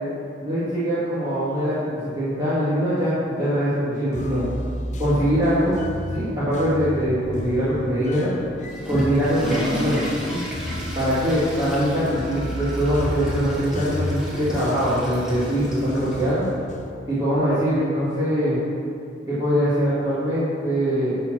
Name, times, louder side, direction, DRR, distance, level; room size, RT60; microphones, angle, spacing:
voice 1, 0.4-1.8 2.1-4.4 5.0-5.7 6.1-8.3 8.9-10.1 10.9-16.5 17.1-18.6 19.3-21.2, equal, 25° right, -12 dB, 2.1 m, -22 dB
sound 1, 4.1-16.9, left 1 dB, 40° left, 0.7 m, -32 dB
Water / Toilet flush, 8.5-16.3, equal, 5° right, 2.0 m, -33 dB
11.0 x 4.6 x 6.3 m, 2.5 s
head